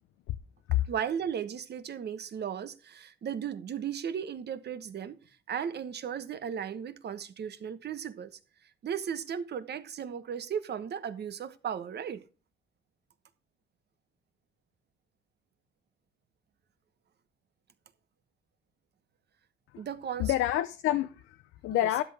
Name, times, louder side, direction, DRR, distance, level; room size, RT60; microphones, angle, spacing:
voice 1, 0.9-5.2 5.5-8.4 8.8-12.2 19.8-20.4 21.7-22.0, right 8 dB, 55° right, 1.2 m, -36 dB
voice 2, 20.2-22.0, left 14 dB, 85° left, 0.6 m, -28 dB
12.5 x 8.7 x 3.5 m
cardioid pair, 90°, 20 cm